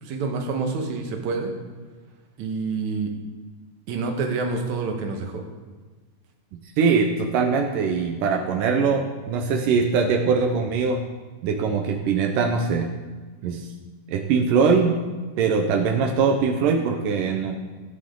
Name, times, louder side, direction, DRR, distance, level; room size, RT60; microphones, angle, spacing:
voice 1, 0.0-1.5 2.4-3.1 3.9-5.4, right 4 dB, 65° right, 2 dB, 2.7 m, -27 dB
voice 2, 6.8-11.0 11.4-12.9 13.4-13.7 14.1-15.0 15.4-17.6, right 5 dB, 85° right, 3 dB, 2.5 m, -22 dB
17.0 x 10.0 x 3.8 m, 1.3 s
omnidirectional pair, 3.7 m